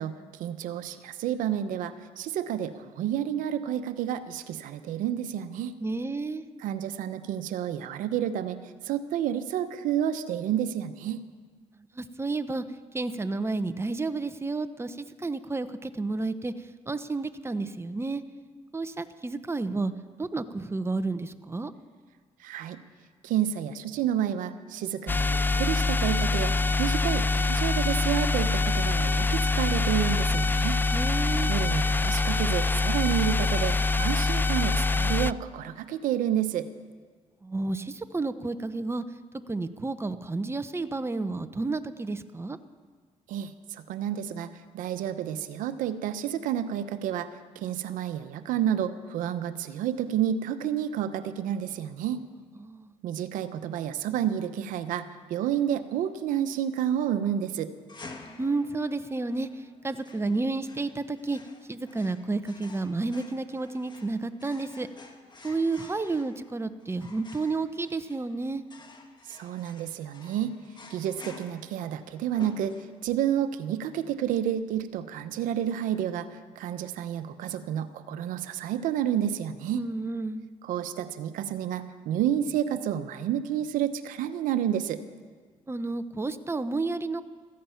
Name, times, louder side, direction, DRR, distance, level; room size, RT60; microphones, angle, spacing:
voice 1, 0.0-5.7 6.6-11.2 22.4-22.8 23.2-30.8 31.5-36.7 43.3-47.3 47.5-52.2 53.0-57.7 69.3-70.5 70.9-79.8 80.6-85.0, right 10 dB, 90° right, 10 dB, 0.8 m, -30 dB
voice 2, 5.8-6.5 11.9-12.6 12.9-18.2 18.7-19.9 20.2-21.7 30.9-31.5 37.4-39.0 39.5-42.6 52.6-52.9 58.2-61.4 61.7-64.9 65.4-68.6 79.7-80.5 85.7-87.2, right 3 dB, 20° right, 10 dB, 0.9 m, -31 dB
sound 1, 25.1-35.3, left 3 dB, 15° left, 0.4 m, -25 dB
sound 2, 57.9-73.2, left 3 dB, 35° left, 1.9 m, -50 dB
16.0 x 14.5 x 5.8 m, 1.5 s
cardioid pair, 70°, 13 cm